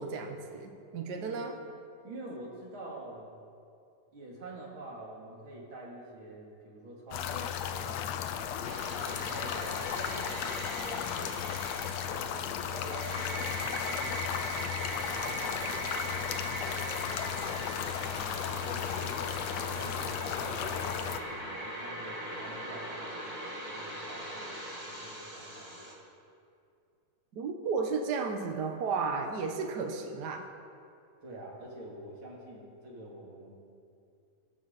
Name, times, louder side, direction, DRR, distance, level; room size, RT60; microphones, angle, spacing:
voice 1, 0.0-1.6 27.3-30.5, right 4 dB, 75° right, 4 dB, 0.9 m, -33 dB
voice 2, 1.1-1.6 2.0-3.3 4.1-8.4 8.9-12.3 12.7-17.1 17.8-21.1 21.5-23.3 23.7-26.0 31.2-33.7, right 2 dB, 45° right, -3 dB, 3.3 m, -47 dB
sound 1, 7.1-21.2, left 9 dB, 75° left, 1.8 m, -35 dB
sound 2, 8.6-25.9, right 1 dB, 15° right, 1.9 m, -40 dB
22.5 x 11.5 x 4.1 m, 2.5 s
omnidirectional pair, 3.3 m